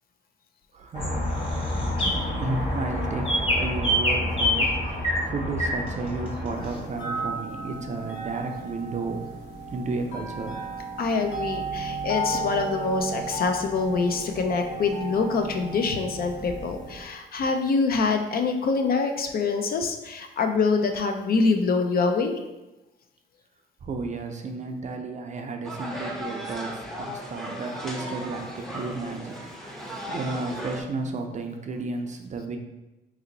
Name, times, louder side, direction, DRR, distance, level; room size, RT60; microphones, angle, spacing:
voice 1, 0.7-1.4 1.8-9.3 9.7-10.6 23.8-32.6, right 3 dB, 40° right, 4 dB, 0.5 m, -33 dB
sound 1, 0.9-6.8, left 1 dB, 25° left, 0.9 m, -26 dB
sound 2, 6.5-17.0, right 2 dB, 70° left, 1.0 m, -34 dB
voice 2, 11.0-22.3, left 4 dB, 50° left, 5 dB, 0.5 m, -25 dB
sound 3, 25.6-30.8, equal, ahead, 0.6 m, -36 dB
2.9 x 2.7 x 3.9 m, 1.0 s
cardioid pair, 90°, 20 cm